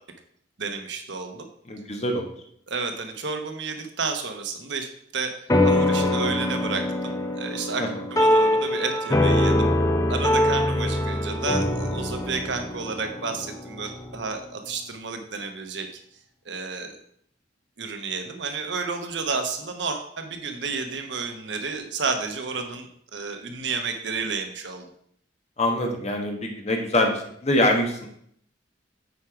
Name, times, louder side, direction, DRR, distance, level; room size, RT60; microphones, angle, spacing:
voice 1, 0.6-1.5 2.7-4.9 5.1-5.3 5.6-9.7 10.1-15.9 16.4-17.0 17.8-24.9, right 4 dB, 75° right, 5 dB, 1.0 m, -31 dB
voice 2, 1.7-2.3 7.8-7.9 25.6-28.1, left 1 dB, 35° left, 2 dB, 1.2 m, -24 dB
sound 1, 5.5-14.2, left 1 dB, 20° left, 0.6 m, -23 dB
8.3 x 4.6 x 4.9 m, 0.68 s
head